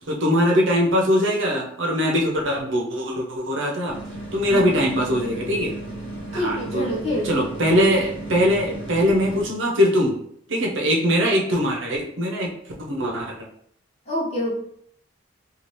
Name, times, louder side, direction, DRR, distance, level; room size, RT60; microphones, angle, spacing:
voice 1, 0.1-4.0 4.3-5.8 6.3-6.9 7.2-10.1 10.5-12.5 12.9-13.4, equal, 70° right, 0 dB, 0.7 m, -21 dB
sound 1, 3.9-9.5, right 1 dB, 25° right, 0.9 m, -35 dB
voice 2, 6.3-7.5 14.1-14.5, left 1 dB, 35° left, -4 dB, 0.8 m, -26 dB
2.8 x 2.4 x 3.2 m, 0.67 s
head